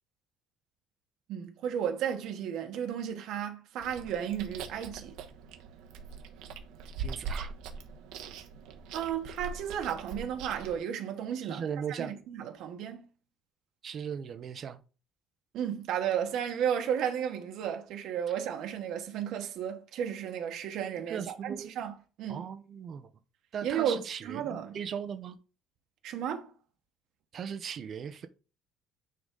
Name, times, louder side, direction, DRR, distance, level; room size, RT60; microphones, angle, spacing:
voice 1, 1.3-5.2 8.9-11.6 12.0-13.1 15.5-21.9 22.2-22.5 23.6-24.8 26.0-26.5, right 9 dB, 60° right, 1.2 m, -33 dB
Chewing mastication, 3.8-10.8, right 5 dB, 85° right, 1.1 m, -42 dB
voice 2, 7.0-7.5 11.4-12.1 13.8-14.8 21.1-21.7 22.3-23.1 23.5-25.4 27.3-28.3, right 7 dB, 35° right, 0.7 m, -38 dB
9.4 x 3.9 x 3.8 m
cardioid pair, 165°, 0 cm